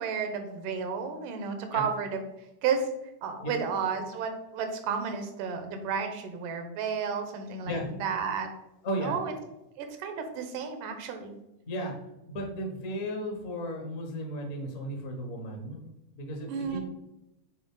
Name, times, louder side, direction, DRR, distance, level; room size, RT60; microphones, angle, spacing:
voice 1, 0.0-2.2 2.6-2.9 3.2-8.5 9.0-9.3 9.8-11.4 16.5-16.8, right 6 dB, 85° right, 6 dB, 2.5 m, -32 dB
voice 2, 8.8-9.2 11.7-11.9 12.3-15.8 16.2-16.8, equal, 50° left, 1 dB, 0.9 m, -34 dB
8.7 x 3.9 x 3.8 m, 0.90 s
omnidirectional pair, 3.6 m